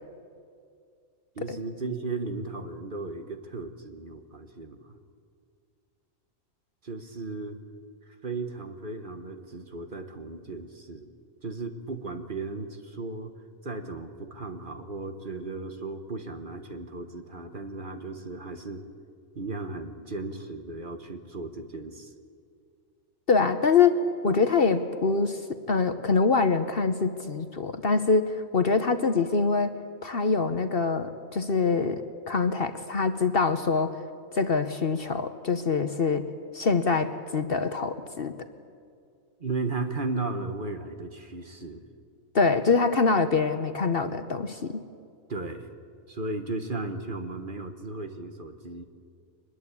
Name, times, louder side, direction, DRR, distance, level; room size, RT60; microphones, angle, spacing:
voice 1, 1.3-5.0 6.8-7.6 8.0-11.1 11.4-13.3 13.6-18.8 19.3-22.1 39.4-41.8 45.3-45.7 46.1-48.8, right 3 dB, 40° right, 7 dB, 1.5 m, -35 dB
voice 2, 23.3-25.4 25.7-29.7 30.0-34.0 34.3-36.3 36.5-38.3 42.3-44.8, left 4 dB, 45° left, 9 dB, 1.0 m, -24 dB
23.5 x 21.0 x 8.4 m, 2.3 s
omnidirectional pair, 1.5 m